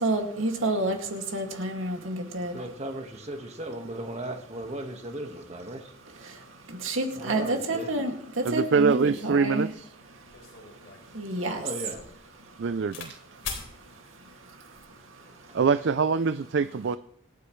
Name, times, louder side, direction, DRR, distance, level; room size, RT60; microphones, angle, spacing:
voice 1, 0.0-2.5 6.8-9.7 11.2-11.6, right 2 dB, 90° right, 2.2 m, -29 dB
voice 2, 2.5-5.9 7.2-7.9 11.6-12.0, right 1 dB, 35° right, 1.5 m, -36 dB
voice 3, 8.4-9.9 12.6-13.2 15.5-17.0, right 5 dB, 60° right, 0.4 m, -24 dB
sound 1, 10.3-13.1 13.4-13.7 14.5-14.9, left 5 dB, 65° left, 4.0 m, -41 dB
26.0 x 9.5 x 3.2 m
head